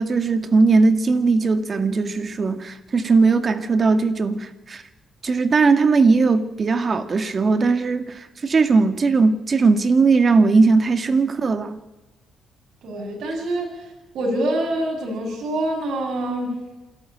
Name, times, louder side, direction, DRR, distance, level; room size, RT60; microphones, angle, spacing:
voice 1, 0.0-4.8 5.2-11.8, right 4 dB, 40° right, 2.0 m, -18 dB
voice 2, 12.8-13.9 14.1-16.6, right 1 dB, 70° right, 6.3 m, -25 dB
27.5 x 12.0 x 8.6 m
cardioid pair, 90°, 0 cm